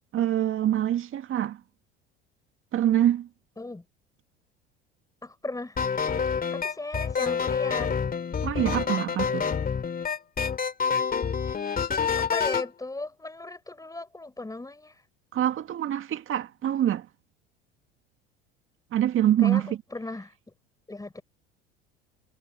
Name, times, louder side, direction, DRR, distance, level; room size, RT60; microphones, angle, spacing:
voice 1, 0.1-1.6 2.7-3.3 8.4-9.5 15.3-17.1 18.9-19.8, right 11 dB, 45° right, 2.2 m, -25 dB
voice 2, 5.2-5.8 6.5-7.9 12.3-15.0 19.4-20.3 20.9-21.2, left 2 dB, 10° left, 4.4 m, -36 dB
sound 1, 5.8-12.7, left 6 dB, 30° left, 2.8 m, -27 dB
hypercardioid pair, 70°, 30 cm